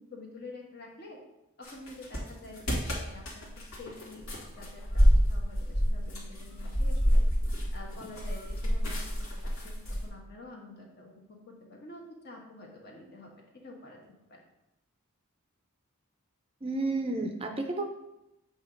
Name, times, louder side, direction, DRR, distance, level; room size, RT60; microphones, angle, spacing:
voice 1, 0.1-1.2 1.6-3.5 3.8-4.3 4.6-7.2 7.7-13.3 13.6-14.0 14.3-14.4, left 2 dB, 50° left, -1 dB, 1.4 m, -48 dB
sound 1, 1.6-10.1, equal, 65° left, 1.7 m, -27 dB
voice 2, 16.6-17.9, right 2 dB, 25° right, 4 dB, 0.5 m, -31 dB
7.8 x 2.9 x 5.2 m, 0.88 s
head